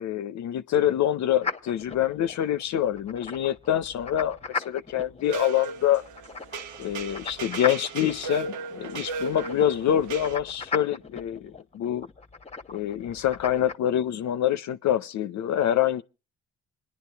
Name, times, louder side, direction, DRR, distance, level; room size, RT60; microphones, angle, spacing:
voice 1, 0.0-6.0 6.8-12.1 12.7-16.0, left 11 dB, 65° left, 0.7 m, -26 dB
sound 1, 1.4-13.8, left 4 dB, 20° left, 1.0 m, -38 dB
sound 2, 5.2-10.4, right 4 dB, 75° right, 0.9 m, -36 dB
28.0 x 10.5 x 3.4 m
supercardioid pair, 65°, 30 cm